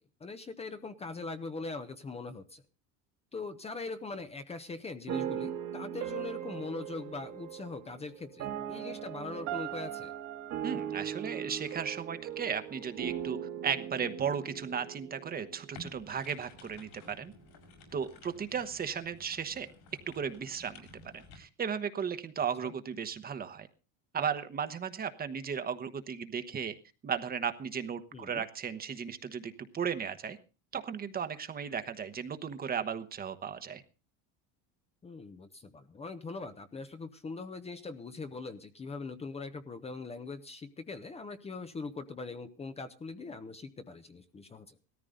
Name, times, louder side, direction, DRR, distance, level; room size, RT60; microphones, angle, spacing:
voice 1, 0.2-2.6 3.3-10.1 22.6-22.7 28.1-28.4 35.0-44.8, left 3 dB, 15° left, 9 dB, 0.8 m, -41 dB
sound 1, 5.1-16.2, right 10 dB, 50° right, 1.7 m, -39 dB
voice 2, 10.6-17.3 17.9-19.7 20.1-23.7 24.1-26.7 27.0-30.4 30.7-33.8, right 7 dB, 25° right, 10 dB, 1.1 m, -35 dB
sound 2, 15.7-21.4, left 2 dB, 70° left, 6.3 m, -53 dB
17.0 x 14.0 x 3.8 m, 0.32 s
cardioid pair, 140°, 35 cm